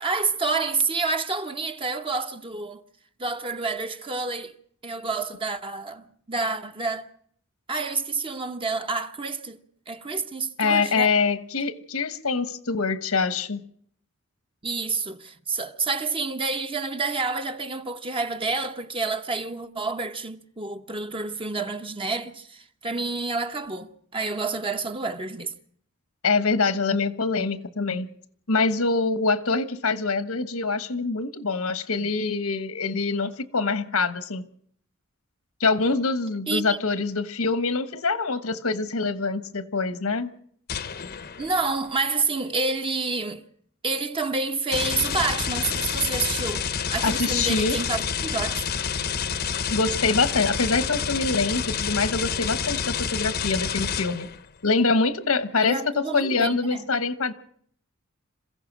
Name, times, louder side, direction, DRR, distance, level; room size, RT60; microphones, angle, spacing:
voice 1, 0.0-2.8 3.2-4.5 4.8-7.1 7.7-9.6 9.9-11.1 14.6-25.5 29.1-29.2 32.0-32.1 36.5-36.8 41.4-43.4 43.8-48.6 55.6-56.9, right 3 dB, 25° right, 1.0 m, -28 dB
voice 2, 10.6-13.6 26.2-28.1 28.5-34.4 35.6-40.3 47.0-47.8 49.7-54.3 54.6-57.3, left 4 dB, 80° left, 1.3 m, -24 dB
sound 1, 40.7-41.7 44.7-54.5, left 7 dB, 50° left, 0.9 m, -29 dB
27.0 x 15.5 x 6.2 m
head